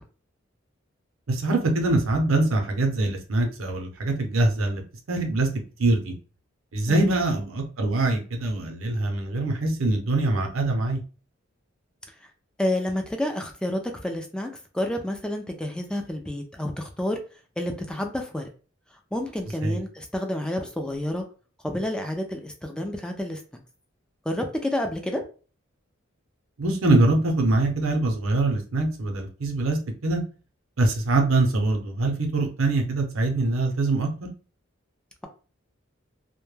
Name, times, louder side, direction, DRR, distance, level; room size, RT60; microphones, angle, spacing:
voice 1, 1.3-4.8 5.1-5.5 5.8-6.1 6.7-11.0 19.6-19.8 26.6-30.2 30.8-34.1, right 2 dB, 80° right, 3 dB, 0.6 m, -23 dB
voice 2, 12.6-17.2 17.6-18.4 19.1-21.2 21.6-23.4 24.3-25.2, left 1 dB, 5° left, 3 dB, 0.3 m, -29 dB
2.1 x 2.1 x 3.1 m, 0.36 s
head